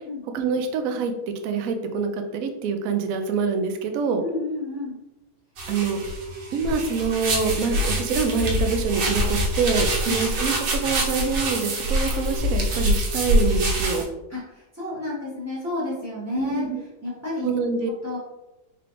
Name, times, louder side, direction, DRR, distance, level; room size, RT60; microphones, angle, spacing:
voice 1, 0.3-1.1 1.4-4.2 5.7-6.0 6.5-14.0 16.3-16.8 17.4-17.9, right 5 dB, 85° right, 5 dB, 0.7 m, -25 dB
voice 2, 4.2-5.0 10.0-10.2 14.3-16.7 17.0-17.5 18.0-18.2, left 2 dB, 15° right, -7 dB, 0.6 m, -30 dB
sound 1, 5.6-14.0, right 1 dB, 65° right, 1.6 m, -25 dB
4.9 x 3.3 x 3.0 m, 0.97 s
omnidirectional pair, 2.2 m